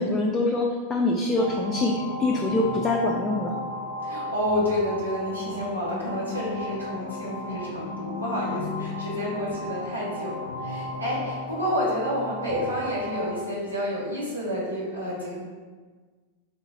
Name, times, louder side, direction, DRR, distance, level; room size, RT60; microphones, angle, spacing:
voice 1, 0.0-3.5, left 2 dB, 15° left, -1 dB, 0.4 m, -24 dB
sound 1, 1.4-13.4, left 2 dB, 75° left, 0.6 m, -34 dB
voice 2, 4.0-15.4, left 1 dB, 85° right, -7 dB, 1.1 m, -29 dB
3.5 x 2.8 x 3.8 m, 1.4 s
figure-of-eight pair, 90°, 0 cm